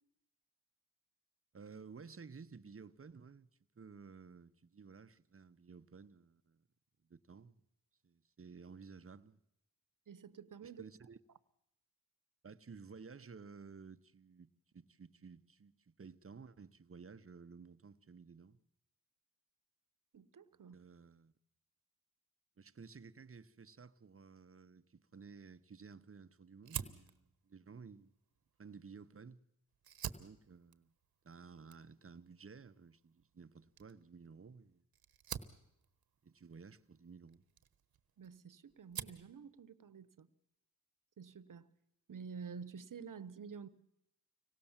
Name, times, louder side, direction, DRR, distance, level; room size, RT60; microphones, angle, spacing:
voice 1, 1.5-3.5 3.7-6.7 7.0-7.6 8.0-9.4 10.6-11.2 12.4-18.6 20.7-21.3 22.6-28.1 28.6-29.4 30.1-30.9 31.2-34.8 36.2-37.4, right 5 dB, 35° right, 1.0 m, -55 dB
voice 2, 10.1-10.8 20.1-20.7 38.2-40.3 41.2-41.7 42.1-43.7, right 6 dB, 60° right, 1.2 m, -50 dB
Fire, 26.6-29.3 29.7-38.4 38.7-39.3, right 9 dB, 75° right, 1.3 m, -49 dB
25.0 x 18.0 x 7.4 m
cardioid pair, 50°, 36 cm